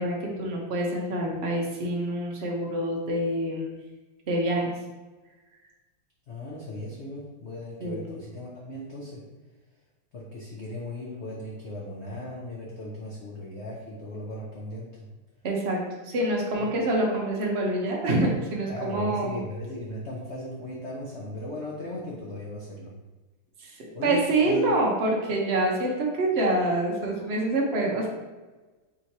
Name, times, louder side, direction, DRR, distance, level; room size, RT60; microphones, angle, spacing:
voice 1, 0.0-3.7 4.3-4.7 7.8-8.0 15.4-19.4 23.6-28.1, right 1 dB, 75° right, -2 dB, 0.5 m, -26 dB
voice 2, 6.3-9.2 10.1-15.1 16.6-16.7 18.7-22.9 23.9-24.7, left 1 dB, 90° left, -4 dB, 0.6 m, -37 dB
3.6 x 2.8 x 4.5 m, 1.2 s
omnidirectional pair, 2.1 m